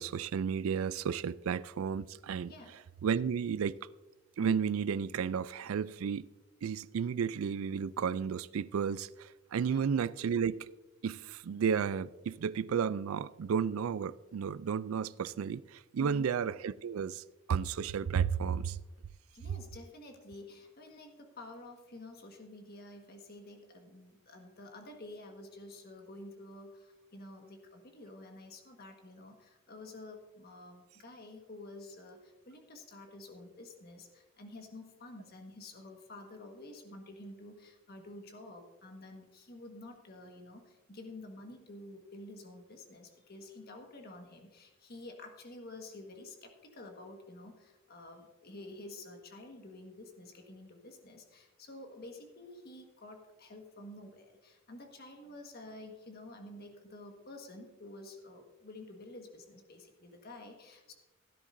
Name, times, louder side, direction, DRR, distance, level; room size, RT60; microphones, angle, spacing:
voice 1, 0.0-2.5 3.0-3.7 4.4-6.2 6.6-10.7 11.0-17.2 17.5-18.8, right 7 dB, 75° right, 0.4 m, -32 dB
voice 2, 2.5-2.8 9.7-9.9 16.0-16.3 19.3-60.9, left 2 dB, 45° left, 1.5 m, -50 dB
16.5 x 10.0 x 2.6 m
head